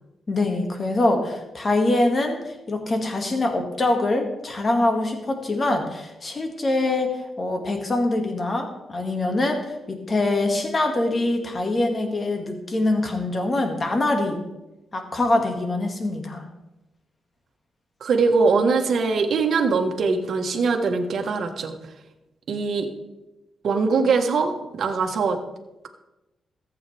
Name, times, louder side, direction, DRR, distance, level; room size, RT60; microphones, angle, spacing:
voice 1, 0.3-14.4 14.9-16.4, left 2 dB, 35° left, 3 dB, 2.0 m, -24 dB
voice 2, 18.0-21.7 22.5-22.9 23.6-25.4, right 4 dB, 65° right, 4 dB, 1.3 m, -22 dB
14.5 x 8.1 x 3.4 m, 1.0 s
cardioid pair, 90°, 0 cm